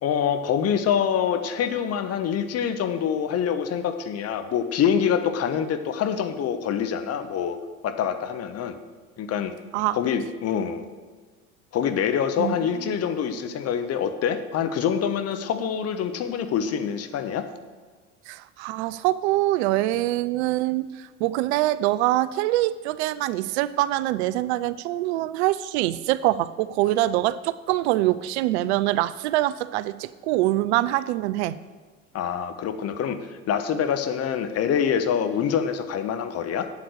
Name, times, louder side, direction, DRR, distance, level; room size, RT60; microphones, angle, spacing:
voice 1, 0.0-7.6 7.8-8.8 9.2-9.5 9.9-10.8 11.7-17.5 32.1-36.7, left 8 dB, 40° left, 9 dB, 1.1 m, -25 dB
voice 2, 18.3-31.6, right 16 dB, 60° right, 17 dB, 0.5 m, -24 dB
8.3 x 7.8 x 8.1 m, 1.4 s
figure-of-eight pair, 70°, 38 cm